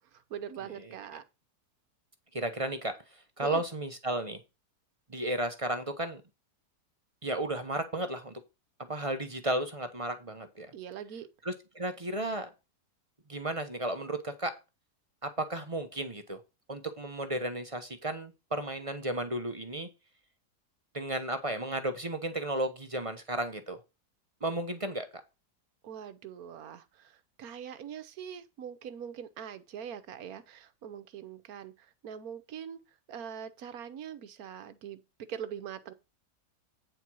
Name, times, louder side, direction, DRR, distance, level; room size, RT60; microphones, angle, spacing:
voice 1, 0.1-1.2 3.4-3.6 10.7-11.3 25.8-32.8 33.1-35.0 35.3-35.9, right 8 dB, 65° right, 1.3 m, -42 dB
voice 2, 2.3-2.9 3.4-4.4 5.1-6.2 7.2-8.3 8.9-10.7 11.4-12.5 13.3-14.5 15.2-16.4 16.7-19.9 20.9-23.8 24.4-25.1, right 1 dB, 25° right, 0.8 m, -33 dB
9.1 x 4.4 x 6.1 m
omnidirectional pair, 1.7 m